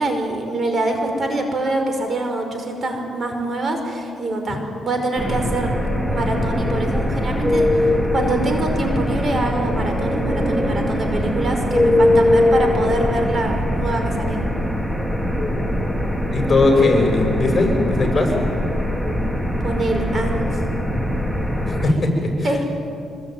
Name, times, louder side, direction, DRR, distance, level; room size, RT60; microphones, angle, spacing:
voice 1, 0.0-5.7 6.1-14.4 19.6-20.5 22.4-22.6, right 2 dB, 40° right, 4 dB, 5.4 m, -24 dB
sound 1, 5.2-21.9, left 1 dB, 5° right, 2.7 m, -21 dB
voice 2, 16.3-18.3 21.7-22.5, left 2 dB, 30° left, 2 dB, 7.5 m, -18 dB
25.5 x 23.5 x 9.4 m, 2.5 s
cardioid pair, 90°, 0 cm